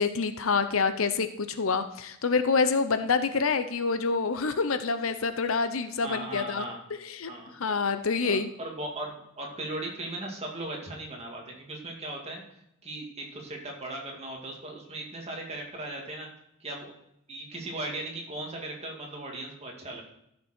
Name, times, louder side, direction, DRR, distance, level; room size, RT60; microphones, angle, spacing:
voice 1, 0.0-6.6 7.0-8.5, left 4 dB, 70° left, 10 dB, 0.7 m, -27 dB
voice 2, 6.0-6.8 7.3-7.5 8.2-12.4 12.8-16.3 16.6-16.9 17.3-20.0, right 1 dB, 30° right, 0 dB, 2.3 m, -37 dB
14.0 x 6.7 x 4.4 m, 0.78 s
head